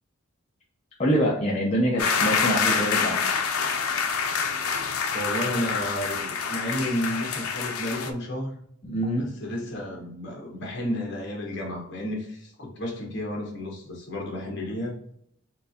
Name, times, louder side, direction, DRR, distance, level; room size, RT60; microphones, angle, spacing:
voice 1, 1.0-3.2 8.8-9.3, equal, 30° left, -5 dB, 0.6 m, -25 dB
sound 1, 2.0-8.1, left 6 dB, 85° left, 0.5 m, -27 dB
voice 2, 5.1-8.6 9.2-14.9, left 1 dB, 55° left, -1 dB, 1.3 m, -32 dB
4.4 x 2.6 x 2.7 m, 0.69 s
head